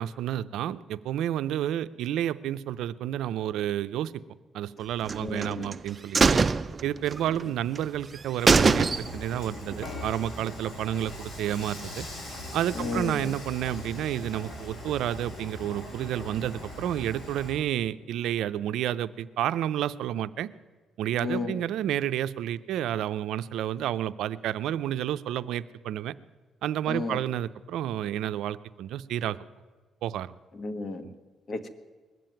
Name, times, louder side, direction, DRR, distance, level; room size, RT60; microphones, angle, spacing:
voice 1, 0.0-4.2 4.5-6.4 6.8-12.0 12.5-20.5 21.0-26.1 26.6-29.4 30.0-30.3 31.0-31.1, right 11 dB, 85° right, 14 dB, 0.5 m, -30 dB
sound 1, 5.1-5.8 6.1-7.4 7.8-7.9 8.2-8.3 8.5-9.4 9.7-9.8, right 4 dB, 35° right, 0.5 m, -22 dB
voice 2, 5.2-5.7 12.8-13.3 21.2-21.6 26.9-27.2 30.6-31.1 31.5-31.7, left 3 dB, 45° left, 9 dB, 1.4 m, -33 dB
Dishes pots and pans / Frying (food), 8.4-17.6, left 1 dB, 75° left, 5.2 m, -40 dB
20.5 x 7.7 x 9.0 m, 1.4 s
cardioid pair, 90°, 0 cm